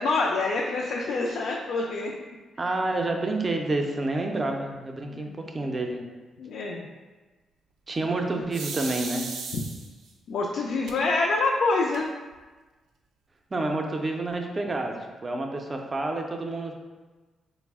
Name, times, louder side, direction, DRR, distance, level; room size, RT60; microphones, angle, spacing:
voice 1, 0.0-2.1 5.1-5.4 6.4-6.9 9.5-9.6 10.3-12.1, left 3 dB, 75° left, -2 dB, 0.3 m, -26 dB
voice 2, 2.6-6.1 7.9-9.3 13.5-16.7, right 2 dB, 30° right, 3 dB, 0.4 m, -29 dB
sound 1, 8.5-10.1 10.9-11.0 11.4-11.5 11.7-12.3, right 4 dB, 90° right, 0.4 m, -36 dB
3.9 x 2.0 x 3.5 m, 1.3 s
cardioid pair, 110°, 0 cm